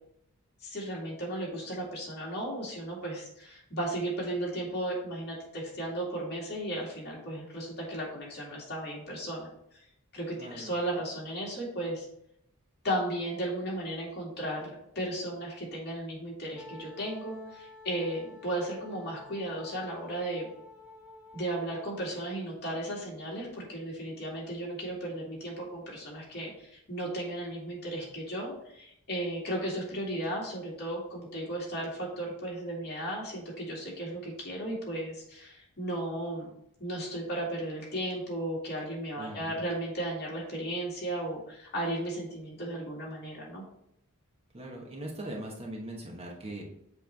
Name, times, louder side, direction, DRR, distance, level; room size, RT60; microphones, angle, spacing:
voice 1, 0.6-9.5 10.1-12.1 12.8-20.5 21.3-36.5 36.8-43.6, right 1 dB, 50° left, -4 dB, 2.4 m, -35 dB
voice 2, 10.4-10.7 39.2-39.5 44.5-46.6, right 1 dB, 30° right, -2 dB, 1.1 m, -40 dB
Wind instrument woodwind instrument, 16.6-22.5, left 3 dB, 5° right, 0.9 m, -51 dB
7.5 x 3.4 x 4.6 m, 0.75 s
head